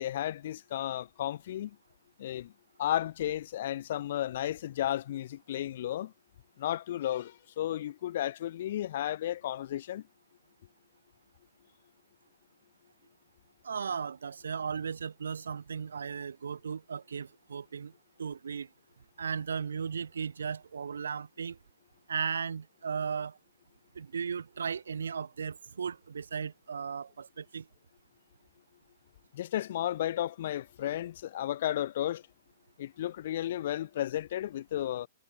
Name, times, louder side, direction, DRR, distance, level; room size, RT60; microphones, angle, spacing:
voice 1, 0.0-1.8 2.2-2.5 2.8-6.1 6.6-10.0 29.3-32.2 32.8-35.1, left 12 dB, 60° left, 4.2 m, -33 dB
voice 2, 13.6-17.9 18.2-18.7 19.2-21.6 22.1-23.4 23.9-27.7, right 6 dB, 80° right, 4.5 m, -36 dB
hypercardioid pair, 120°, 0 cm